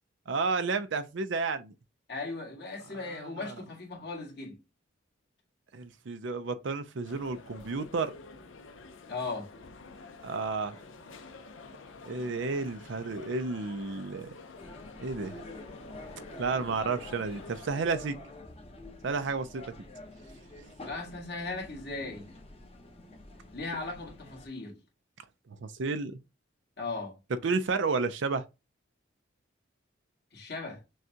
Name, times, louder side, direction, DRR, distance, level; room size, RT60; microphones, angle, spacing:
voice 1, 0.3-1.7 2.9-3.5 5.7-8.1 10.2-10.8 12.0-14.3 15.0-15.4 16.4-18.2 19.0-19.7 25.6-26.2 27.4-28.5, right 4 dB, 70° right, 0.5 m, -31 dB
voice 2, 2.1-4.6 9.1-9.5 20.8-22.3 23.5-24.8 26.8-27.2 30.3-30.8, left 3 dB, 55° left, 1.8 m, -37 dB
sound 1, 7.0-17.7, left 3 dB, 75° left, 0.7 m, -49 dB
sound 2, 14.6-24.5, left 2 dB, 30° left, 0.9 m, -48 dB
6.3 x 2.3 x 2.8 m
head